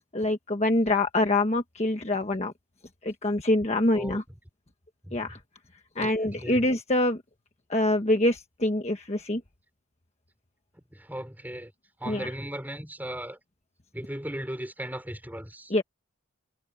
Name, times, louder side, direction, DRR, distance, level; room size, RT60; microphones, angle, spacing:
voice 1, 0.1-2.5 3.0-4.2 5.1-5.4 5.9-7.2 7.7-9.4 12.0-12.3 15.7-15.8, left 1 dB, 30° left, 1.3 m, -25 dB
voice 2, 6.0-6.7 10.9-11.7 12.0-13.4 13.9-15.7, right 1 dB, 10° right, 5.2 m, -37 dB
head